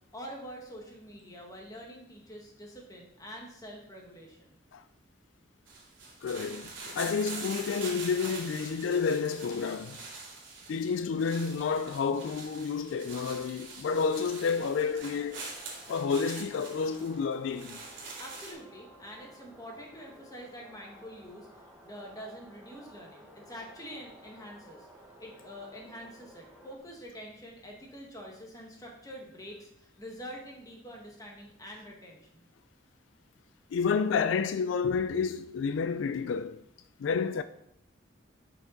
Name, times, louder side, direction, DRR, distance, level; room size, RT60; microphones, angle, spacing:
voice 1, 0.1-4.6 18.2-24.9 25.2-32.4, equal, 20° left, 1.7 m, -46 dB
sound 1, 5.7-18.5, right 3 dB, 75° right, 2.7 m, -44 dB
voice 2, 6.2-10.0 10.7-15.5 15.9-17.8 33.7-36.6 37.0-37.4, left 5 dB, 75° left, 0.3 m, -30 dB
sound 2, 14.7-26.8, equal, 5° right, 1.2 m, -55 dB
8.1 x 5.8 x 3.9 m
head